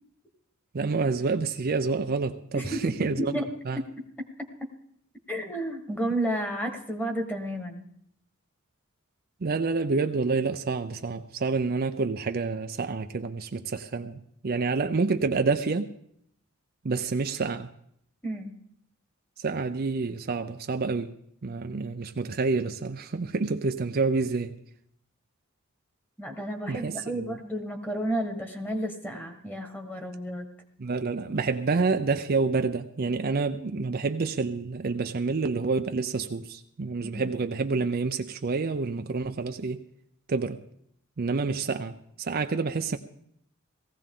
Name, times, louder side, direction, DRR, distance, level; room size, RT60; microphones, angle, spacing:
voice 1, 0.7-3.3 3.7-3.8 9.4-15.9 16.8-17.7 19.4-21.2 21.4-24.6 26.7-27.4 30.8-39.8 40.3-40.6 41.2-41.9 42.2-43.0, right 4 dB, 45° right, 0.5 m, -28 dB
voice 2, 2.5-2.8 3.2-3.5 4.4-4.5 5.3-7.8 18.2-18.5 26.2-30.5 37.0-37.3, right 1 dB, 10° left, 1.5 m, -32 dB
18.5 x 15.0 x 3.8 m
head